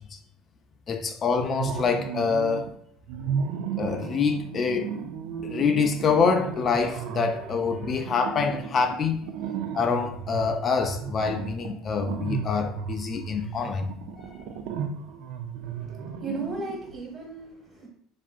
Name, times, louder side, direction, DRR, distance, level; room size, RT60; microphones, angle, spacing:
voice 1, 0.9-2.7 3.8-4.9 5.4-9.2 9.7-13.9 14.4-14.5, left 5 dB, 40° left, 0.3 m, -26 dB
sound 1, 1.3-2.7 3.1-17.0, right 7 dB, 70° right, 0.4 m, -34 dB
voice 2, 15.6-17.9, right 2 dB, 35° right, 1.3 m, -36 dB
3.4 x 2.5 x 2.4 m
hypercardioid pair, 75°, 0 cm